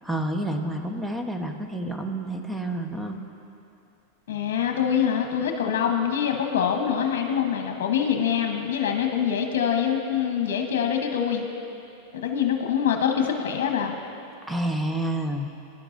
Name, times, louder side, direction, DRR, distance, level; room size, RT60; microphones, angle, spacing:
voice 1, 0.0-3.2 14.5-15.5, right 1 dB, 5° right, 4 dB, 1.0 m, -29 dB
voice 2, 4.3-11.4 12.1-14.0, left 8 dB, 75° left, 2 dB, 1.0 m, -24 dB
21.5 x 11.5 x 2.6 m, 2.7 s
hypercardioid pair, 120°, 0 cm